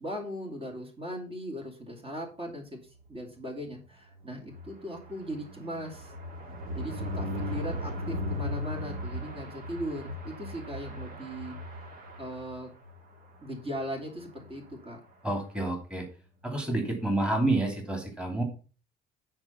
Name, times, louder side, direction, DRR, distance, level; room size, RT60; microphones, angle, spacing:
voice 1, 0.0-6.1 6.7-11.6 12.2-12.7 13.4-15.0, equal, 35° right, 2 dB, 2.7 m, -39 dB
sound 1, 4.1-12.9 13.3-13.5 13.8-13.9 14.1-14.4, left 1 dB, 60° right, 2.6 m, -37 dB
voice 2, 15.2-16.1 16.4-18.4, right 2 dB, 5° right, 2 dB, 2.7 m, -29 dB
9.6 x 4.6 x 5.7 m, 0.36 s
cardioid pair, 110°, 17 cm